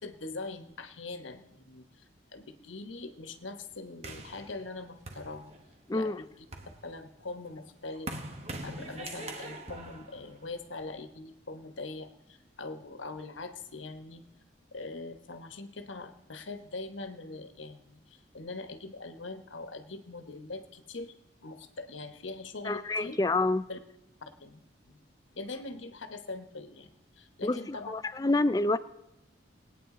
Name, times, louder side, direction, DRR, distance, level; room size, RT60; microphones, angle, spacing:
voice 1, 0.0-2.0 2.3-5.5 5.9-6.5 6.8-8.1 8.6-14.3 14.7-21.1 21.4-23.2 23.7-23.8 24.2-25.0 25.3-27.9, left 3 dB, 90° left, 8 dB, 1.1 m, -42 dB
sound 1, 4.0-5.9 6.3-11.0, right 2 dB, 35° right, 1.3 m, -43 dB
voice 2, 5.9-6.2 22.6-23.7 27.4-28.8, left 2 dB, 20° left, 13 dB, 0.4 m, -28 dB
20.5 x 9.2 x 3.8 m, 0.93 s
head